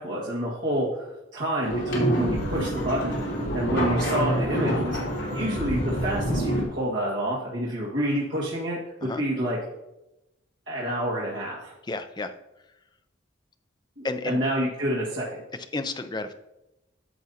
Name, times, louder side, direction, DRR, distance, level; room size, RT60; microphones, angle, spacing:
voice 1, 0.0-3.2 3.5-5.0 5.3-9.6 10.7-11.7 14.0-15.2, right 1 dB, 65° right, -7 dB, 1.8 m, -28 dB
sound 1, 1.6-6.6, equal, 75° left, 2.8 m, -26 dB
voice 2, 11.9-12.3 14.0-14.4 15.7-16.3, left 3 dB, 20° left, 8 dB, 0.5 m, -31 dB
11.0 x 7.1 x 2.8 m, 0.93 s
head